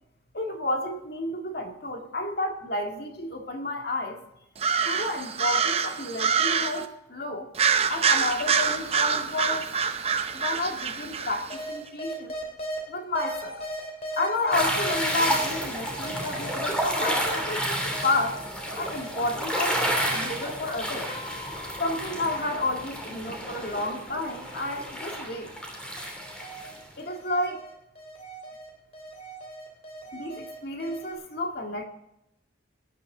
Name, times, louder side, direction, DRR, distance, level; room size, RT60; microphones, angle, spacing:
voice 1, 0.3-4.2 4.8-7.5 7.9-9.7 10.3-12.3 12.9-13.6 14.1-18.4 18.8-21.1 21.8-25.5 27.0-27.6 30.1-31.9, left 2 dB, 55° left, 3 dB, 1.9 m, -31 dB
sound 1, 4.6-6.9 7.5-11.6, right 6 dB, 30° right, 0.7 m, -26 dB
sound 2, 11.5-12.8 13.1-15.6 16.0-18.7 18.9-25.8 26.2-31.1, equal, 35° left, 3.0 m, -40 dB
sound 3, 14.5-26.8, equal, 5° left, 2.8 m, -31 dB
17.5 x 10.5 x 3.8 m, 0.85 s
head